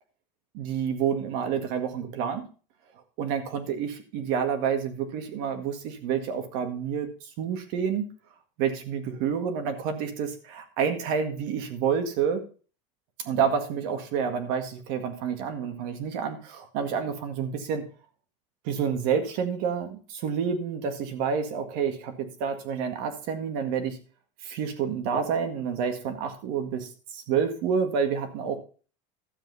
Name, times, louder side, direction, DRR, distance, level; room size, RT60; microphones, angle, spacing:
voice 1, 0.5-2.5 3.2-7.1 7.4-8.1 8.6-12.4 13.2-17.8 18.6-24.0 24.4-28.6, right 7 dB, 65° right, 6 dB, 1.9 m, -29 dB
12.5 x 7.7 x 4.1 m, 0.38 s
cardioid pair, 150°, 16 cm